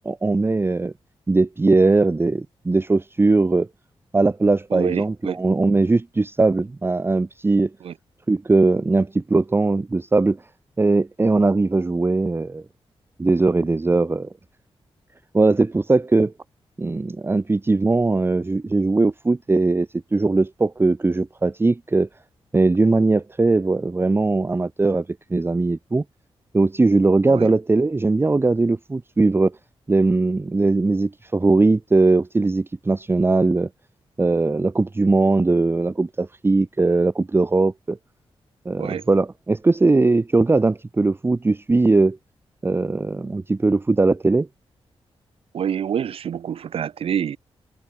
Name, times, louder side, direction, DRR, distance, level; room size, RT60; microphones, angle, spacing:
voice 1, 0.0-0.9 1.3-3.7 4.1-7.7 8.3-10.4 10.8-12.6 13.2-14.3 15.3-16.3 16.8-22.1 22.5-25.0 25.3-26.0 26.5-29.5 29.9-33.7 34.2-38.0 38.6-42.2 42.6-44.5, right 3 dB, 25° right, 0.9 m, -19 dB
voice 2, 4.7-5.4 7.8-7.9 27.3-27.5 38.8-39.0 45.5-47.4, right 8 dB, 65° right, 0.5 m, -27 dB
cardioid pair, 90°, 10 cm